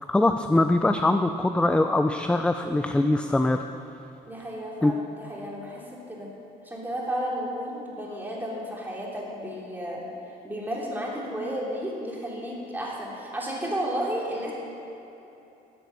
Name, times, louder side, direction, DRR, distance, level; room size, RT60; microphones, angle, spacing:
voice 1, 0.1-3.6 4.8-4.9, left 2 dB, 5° left, 7 dB, 0.4 m, -22 dB
voice 2, 4.3-5.8 6.1-6.3 6.6-10.0 10.4-14.5, equal, 10° right, -4 dB, 3.1 m, -32 dB
13.5 x 7.7 x 7.0 m, 2.9 s
cardioid pair, 110°, 17 cm